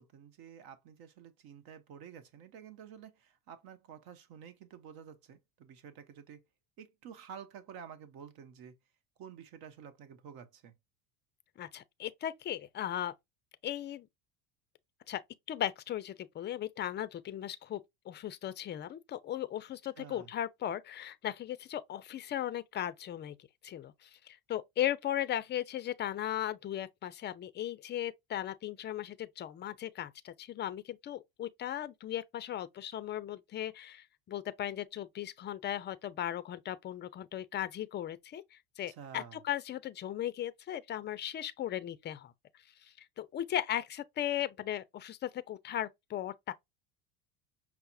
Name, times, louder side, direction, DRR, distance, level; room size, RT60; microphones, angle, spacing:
voice 1, 0.0-6.4 6.8-8.7 9.2-10.7 20.0-20.3 38.9-39.4, right 8 dB, 60° right, 0.9 m, -50 dB
voice 2, 11.6-13.1 13.6-14.1 15.1-15.2 15.5-17.8 18.1-23.4 23.6-42.3 42.8-46.5, left 11 dB, 25° left, 0.4 m, -37 dB
5.6 x 2.1 x 2.5 m
supercardioid pair, 90°, 42 cm